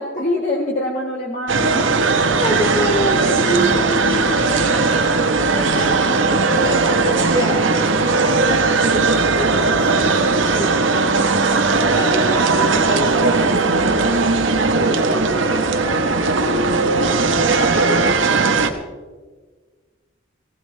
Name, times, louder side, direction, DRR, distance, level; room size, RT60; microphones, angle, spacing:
voice 1, 0.0-2.0 7.4-7.5 16.6-16.8 18.5-18.8, left 1 dB, 40° left, -3 dB, 1.8 m, -25 dB
sound 1, 1.5-18.7, right 3 dB, 80° right, 1.3 m, -18 dB
voice 2, 2.4-7.7 8.0-10.2 10.6-10.8 11.9-14.2 14.6-16.8, equal, 25° left, 0 dB, 3.1 m, -27 dB
19.0 x 16.5 x 3.3 m, 1.4 s
head